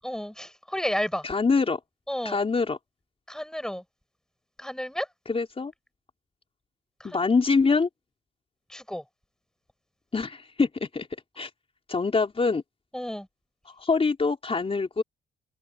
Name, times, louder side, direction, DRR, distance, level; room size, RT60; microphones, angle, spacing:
voice 1, 0.0-1.3 2.1-2.4 3.3-3.8 4.6-5.1 7.0-7.2 8.7-9.0 12.9-13.3, equal, 5° left, 5.3 m, -32 dB
voice 2, 1.2-1.8 2.2-2.8 5.3-5.7 7.0-7.9 10.1-11.1 11.4-11.5 11.9-12.6 13.8-15.0, left 4 dB, 30° left, 4.0 m, -24 dB
cardioid pair, 90°, 20 cm